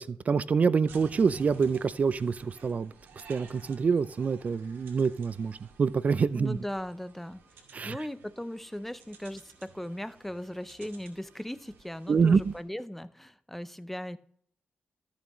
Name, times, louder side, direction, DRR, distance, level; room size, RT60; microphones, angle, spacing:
voice 1, 0.0-6.6 7.7-8.0 12.1-12.5, right 5 dB, 45° right, 0.4 m, -26 dB
sound 1, 0.9-12.6, right 5 dB, 90° right, 2.2 m, -54 dB
voice 2, 6.4-7.4 7.9-14.2, left 1 dB, 5° left, 0.6 m, -38 dB
14.0 x 7.1 x 3.1 m
cardioid pair, 85°, 4 cm